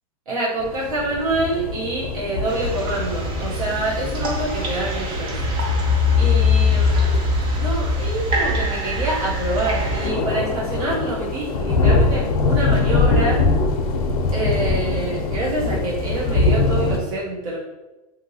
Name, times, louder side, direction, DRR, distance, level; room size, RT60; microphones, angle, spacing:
voice 1, 0.3-5.4 6.2-7.1 7.5-13.4 14.3-17.6, right 2 dB, 80° right, -5 dB, 0.9 m, -26 dB
sound 1, 0.6-17.0, left 3 dB, 70° left, 0.5 m, -24 dB
sound 2, 2.5-10.1, left 3 dB, 25° right, 0.5 m, -22 dB
2.7 x 2.7 x 2.7 m, 1.1 s
supercardioid pair, 145°, 19 cm